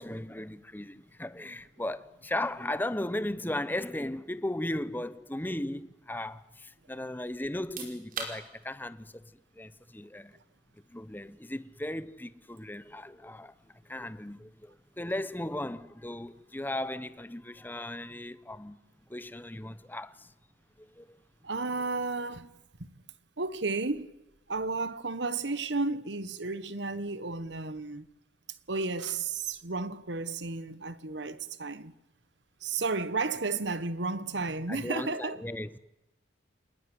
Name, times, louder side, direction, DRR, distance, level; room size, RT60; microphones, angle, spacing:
voice 1, 0.0-9.2 9.6-10.4 10.9-13.5 13.8-18.8 19.1-20.3 20.8-21.2 34.7-35.8, left 1 dB, 10° left, 0.9 m, -36 dB
sound 1, 7.5-20.2, right 4 dB, 45° right, 5.2 m, -50 dB
voice 2, 21.4-22.5 22.8-22.9 23.4-24.1 24.5-28.1 28.7-31.9 32.6-35.4, right 3 dB, 65° right, 1.3 m, -33 dB
27.0 x 20.0 x 9.5 m
head